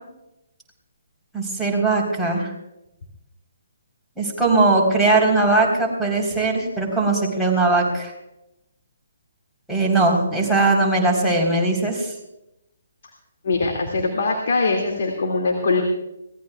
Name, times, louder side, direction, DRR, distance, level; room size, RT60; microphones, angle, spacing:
voice 1, 1.3-2.5 4.2-8.1 9.7-12.1, right 2 dB, ahead, -3 dB, 4.0 m, -20 dB
voice 2, 13.4-15.8, left 3 dB, 55° left, 2 dB, 2.3 m, -22 dB
23.0 x 18.5 x 2.4 m, 0.89 s
figure-of-eight pair, 135°, 0 cm